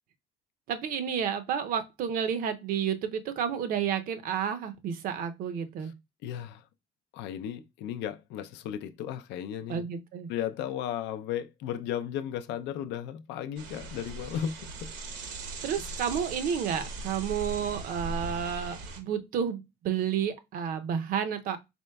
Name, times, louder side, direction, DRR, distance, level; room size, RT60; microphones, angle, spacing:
voice 1, 0.7-5.9 9.7-10.3 15.6-21.6, right 8 dB, 55° right, 0.6 m, -31 dB
voice 2, 6.2-6.7 7.1-14.9 15.7-16.0, left 10 dB, 80° left, 0.5 m, -35 dB
sound 1, 13.6-19.0, right 3 dB, 80° right, 1.0 m, -39 dB
4.4 x 3.9 x 2.2 m
cardioid pair, 175°, 18 cm